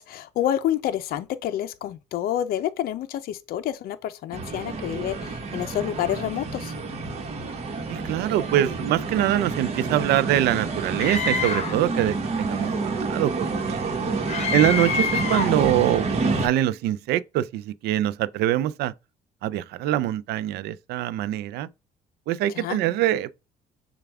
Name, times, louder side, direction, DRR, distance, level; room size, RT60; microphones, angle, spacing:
voice 1, 0.0-6.7 15.1-15.2 22.5-22.8, left 11 dB, 65° left, 0.5 m, -28 dB
sound 1, 4.3-16.5, right 3 dB, 40° right, 1.1 m, -29 dB
voice 2, 7.9-12.7 13.0-13.8 14.5-16.1 16.4-18.9 19.4-21.7 22.3-23.3, right 13 dB, 75° right, 0.4 m, -24 dB
Screaming, 11.0-11.9 14.3-15.6, left 6 dB, 40° left, 1.0 m, -26 dB
6.7 x 2.3 x 3.4 m
cardioid pair, 110°, 17 cm